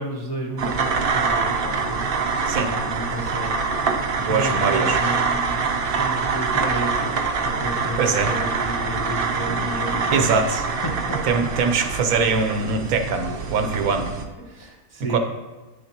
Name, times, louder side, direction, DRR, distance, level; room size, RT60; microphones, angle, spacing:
voice 1, 0.0-3.6 4.3-5.7 6.0-10.4 10.8-11.5 14.4-15.2, equal, 25° left, -1 dB, 0.5 m, -32 dB
sound 1, 0.6-14.3, right 4 dB, 55° right, 0.6 m, -25 dB
voice 2, 4.2-5.0 8.0-8.3 10.1-10.6 11.3-14.1 15.1-15.2, right 5 dB, 80° right, 7 dB, 1.2 m, -22 dB
9.2 x 6.5 x 2.9 m, 1.2 s
omnidirectional pair, 1.6 m